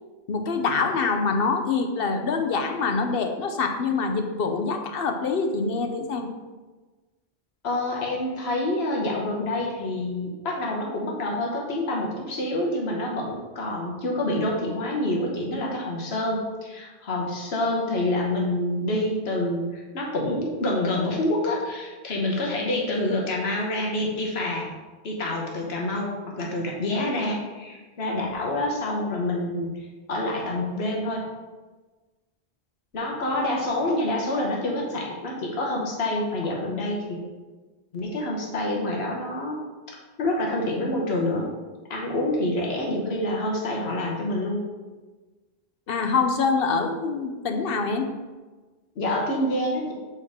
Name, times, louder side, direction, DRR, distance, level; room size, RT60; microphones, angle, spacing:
voice 1, 0.3-6.3 45.9-48.1, left 4 dB, 70° left, 5 dB, 0.9 m, -25 dB
voice 2, 7.6-24.7 25.0-31.3 32.9-37.2 37.9-39.6 39.9-41.5 41.9-44.6 48.9-49.9, left 1 dB, 85° left, -2 dB, 1.3 m, -27 dB
6.9 x 4.6 x 3.6 m, 1.3 s
omnidirectional pair, 1.0 m